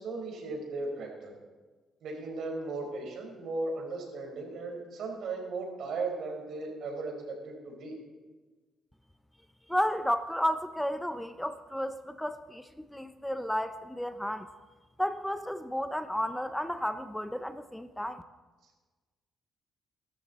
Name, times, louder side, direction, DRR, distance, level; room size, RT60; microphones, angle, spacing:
voice 1, 0.0-1.3 2.0-7.9, right 3 dB, 70° right, 2 dB, 4.5 m, -36 dB
voice 2, 9.7-14.5 15.0-18.2, equal, 5° left, 11 dB, 0.7 m, -32 dB
23.5 x 13.0 x 4.2 m, 1.3 s
cardioid pair, 90°, 0 cm